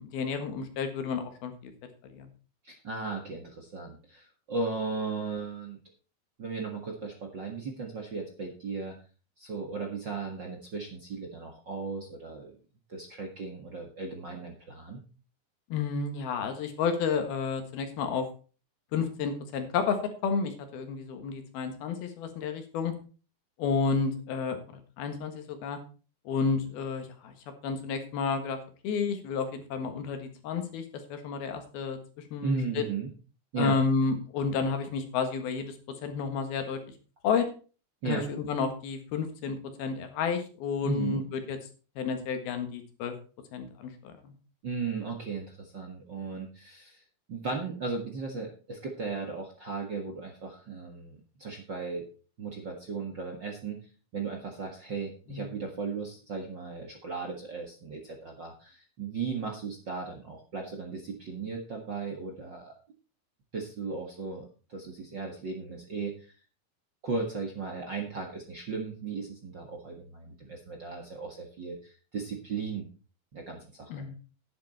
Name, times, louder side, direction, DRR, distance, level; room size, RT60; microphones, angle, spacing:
voice 1, 0.0-1.7 2.1-2.3 15.7-18.3 18.9-22.9 23.6-25.8 26.3-27.4 27.6-28.6 28.8-30.9 31.1-32.0 32.3-32.8 33.6-35.8 36.0-36.8 37.2-37.5 38.1-41.6 42.0-43.2 43.5-44.3 55.3-55.6 73.9-74.2, left 5 dB, 80° left, 7 dB, 3.5 m, -31 dB
voice 2, 2.6-5.8 6.4-8.9 9.4-12.5 12.9-15.0 32.4-33.1 33.5-33.8 38.0-38.2 40.8-41.2 44.6-47.0 47.3-52.0 52.4-53.8 54.1-62.7 63.5-66.3 67.0-72.9 73.3-74.0, right 4 dB, 45° right, 2 dB, 1.6 m, -36 dB
11.5 x 9.8 x 4.2 m, 0.36 s
omnidirectional pair, 4.4 m